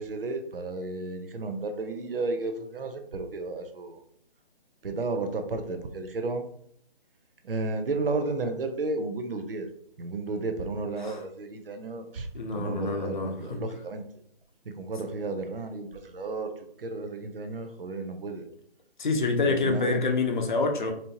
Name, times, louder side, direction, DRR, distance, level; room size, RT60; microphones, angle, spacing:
voice 1, 0.0-4.0 4.8-6.4 7.4-9.7 10.0-12.3 12.5-14.0 14.8-16.5 16.8-18.4 19.4-20.0, right 3 dB, 70° right, 6 dB, 0.7 m, -33 dB
voice 2, 12.3-13.6 19.0-20.9, left 3 dB, 50° left, 4 dB, 0.8 m, -27 dB
4.3 x 2.9 x 2.7 m, 0.66 s
figure-of-eight pair, 155°, 30 cm